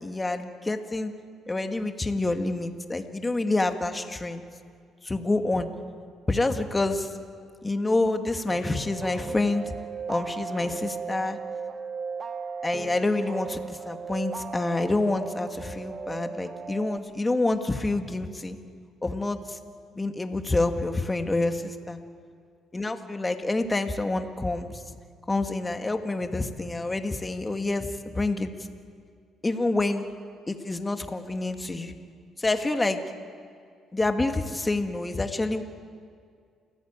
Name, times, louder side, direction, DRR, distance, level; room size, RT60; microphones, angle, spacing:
voice 1, 0.0-1.1 1.5-4.4 5.0-5.7 6.3-7.1 7.6-9.6 10.1-11.4 12.6-18.6 19.0-19.6 19.9-22.0 22.7-24.8 25.3-28.5 29.4-30.1 30.5-31.9 32.4-33.0 33.9-35.6, left 2 dB, 20° left, 6 dB, 1.9 m, -27 dB
sound 1, 8.5-17.0, right 5 dB, 40° right, 1.3 m, -36 dB
29.5 x 17.0 x 8.8 m, 2.2 s
cardioid pair, 100°, 0 cm